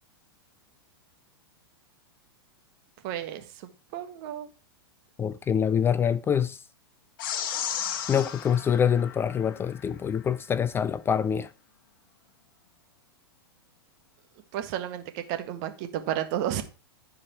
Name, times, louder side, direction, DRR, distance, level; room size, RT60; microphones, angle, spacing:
voice 1, 3.0-3.5 3.9-4.5 14.5-16.6, right 11 dB, 50° right, 1.6 m, -32 dB
voice 2, 5.2-6.6 8.1-11.5, left 8 dB, 20° left, 0.4 m, -25 dB
sound 1, 7.2-9.9, left 9 dB, 60° left, 1.3 m, -34 dB
13.5 x 4.9 x 4.5 m
hypercardioid pair, 105°, 13 cm